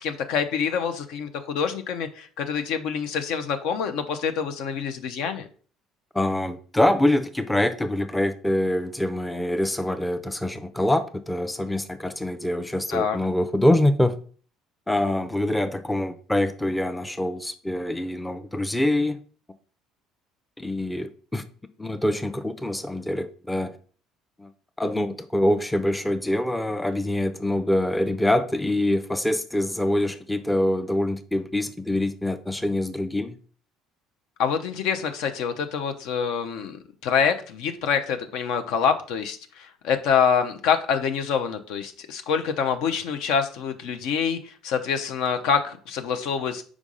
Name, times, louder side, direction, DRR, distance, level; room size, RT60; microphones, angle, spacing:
voice 1, 0.0-5.5 12.9-13.2 34.4-46.6, left 7 dB, 60° left, 0.6 m, -26 dB
voice 2, 6.1-14.2 14.9-19.2 20.6-21.4 21.8-23.7 24.4-24.5 24.8-33.4, left 1 dB, 10° left, 0.6 m, -25 dB
4.9 x 3.6 x 5.3 m
figure-of-eight pair, 55°, 0 cm